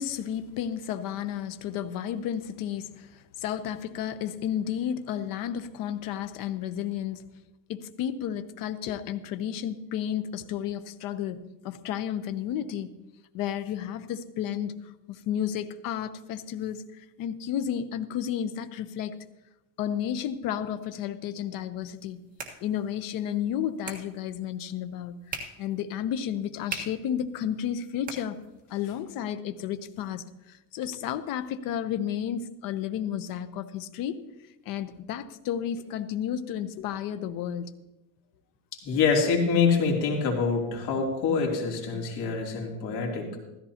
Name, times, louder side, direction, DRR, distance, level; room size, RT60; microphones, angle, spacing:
voice 1, 0.0-7.2 7.7-12.9 13.3-19.2 19.8-22.2 22.6-28.4 28.7-34.2 34.7-37.7, left 9 dB, 50° left, 11 dB, 0.8 m, -32 dB
sound 1, 21.8-28.9, right 4 dB, 20° right, 1.5 m, -44 dB
voice 2, 38.7-43.4, left 5 dB, 70° left, 0 dB, 3.1 m, -25 dB
15.5 x 13.5 x 2.8 m, 0.97 s
cardioid pair, 145°, 44 cm